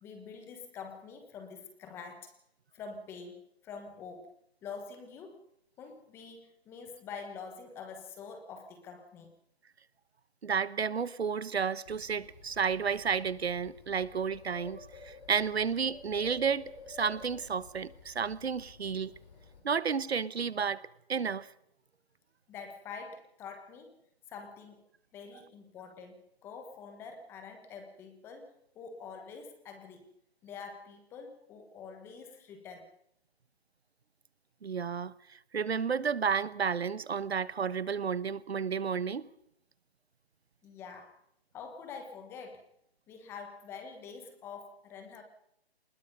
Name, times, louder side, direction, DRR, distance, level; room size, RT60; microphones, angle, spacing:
voice 1, 0.0-2.3 2.7-4.3 4.6-5.4 5.8-9.3 22.5-24.0 24.3-24.8 25.1-30.0 30.4-32.9 40.6-41.2 41.5-42.7 43.1-45.2, left 5 dB, 5° left, 1.1 m, -46 dB
voice 2, 10.4-19.1 19.6-21.5 34.6-35.1 35.5-39.3, right 6 dB, 80° right, 1.1 m, -32 dB
Bird, 11.9-19.6, left 4 dB, 40° left, 4.9 m, -52 dB
24.0 x 20.5 x 5.4 m
hypercardioid pair, 160°, 31 cm